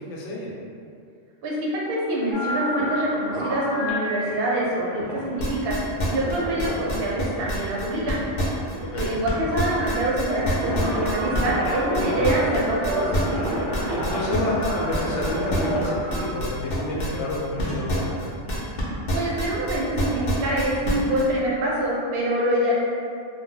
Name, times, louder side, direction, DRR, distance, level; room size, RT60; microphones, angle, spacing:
voice 1, 0.1-0.5 8.8-9.1 13.9-18.1, left 1 dB, 80° left, -4 dB, 0.9 m, -29 dB
voice 2, 1.4-8.2 8.9-13.2 19.1-22.7, right 1 dB, 65° right, -4 dB, 0.7 m, -25 dB
sound 1, 2.3-16.2, equal, 30° right, 0.4 m, -30 dB
sound 2, 5.4-9.3 9.6-18.8 19.1-21.2, equal, 55° left, 0.6 m, -26 dB
2.2 x 2.0 x 3.7 m, 2.4 s
omnidirectional pair, 1.2 m